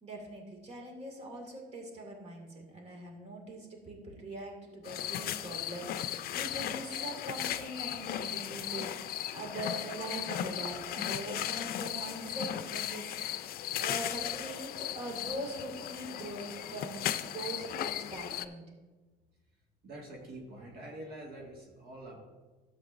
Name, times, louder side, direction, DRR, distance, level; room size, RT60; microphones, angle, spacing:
voice 1, 0.0-8.9 9.3-13.2 13.8-18.6, right 1 dB, 40° right, 1 dB, 2.1 m, -42 dB
sound 1, 4.8-18.4, left 11 dB, 65° left, 0.5 m, -36 dB
voice 2, 19.8-22.2, right 1 dB, 65° right, -1 dB, 1.8 m, -46 dB
12.5 x 7.9 x 2.6 m, 1.3 s
cardioid pair, 110°, 17 cm